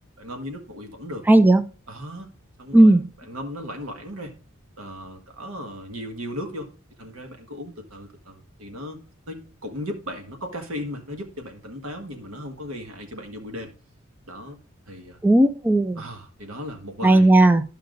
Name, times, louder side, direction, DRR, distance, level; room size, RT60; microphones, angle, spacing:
voice 1, 0.2-1.3 1.9-2.3 2.6-3.0 3.3-4.3 4.8-6.7 7.0-9.0 9.3-13.7 14.3-14.6 14.9-15.2 16.0-17.3, equal, 90° right, 4 dB, 1.6 m, -36 dB
voice 2, 1.3-1.6 2.7-3.0 15.2-16.0 17.0-17.6, right 1 dB, 10° right, 11 dB, 0.4 m, -15 dB
12.5 x 5.6 x 2.6 m, 0.37 s
head